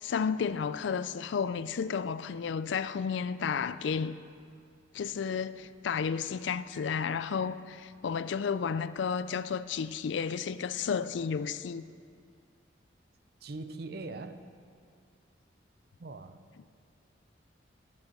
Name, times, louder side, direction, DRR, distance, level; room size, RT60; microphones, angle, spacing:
voice 1, 0.0-4.2 4.9-11.8, left 6 dB, 70° left, 0.4 m, -32 dB
voice 2, 13.4-14.5 16.0-16.5, right 3 dB, 55° right, 0.6 m, -41 dB
11.5 x 7.7 x 7.1 m
head